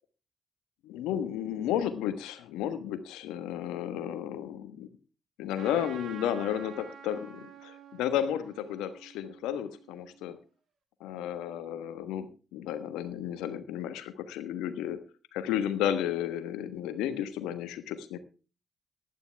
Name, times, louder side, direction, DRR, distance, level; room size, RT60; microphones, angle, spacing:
voice 1, 0.8-4.9 5.4-10.4 11.0-12.3 12.5-15.0 15.3-18.2, left 10 dB, 80° left, 11 dB, 1.2 m, -33 dB
Trumpet, 5.5-10.2, right 7 dB, 65° right, 2.4 m, -49 dB
15.5 x 11.5 x 3.4 m, 0.34 s
hypercardioid pair, 40°, 0 cm